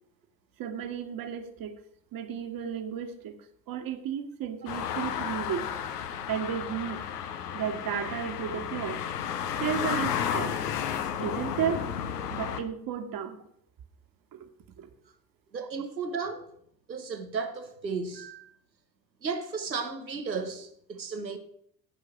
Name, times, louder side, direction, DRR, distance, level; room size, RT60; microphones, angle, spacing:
voice 1, 0.6-1.7 2.1-3.4 3.7-5.7 6.3-7.0 7.5-9.0 9.6-10.6 11.2-11.9 12.3-13.4 14.3-14.5 14.8-14.9, right 8 dB, 45° right, 1.9 m, -33 dB
sound 1, 4.7-12.6, left 8 dB, 70° left, 1.3 m, -32 dB
voice 2, 15.5-16.5 16.9-18.5 19.2-21.4, right 5 dB, 85° right, 1.1 m, -34 dB
17.0 x 6.4 x 6.3 m
figure-of-eight pair, 60°, 50 cm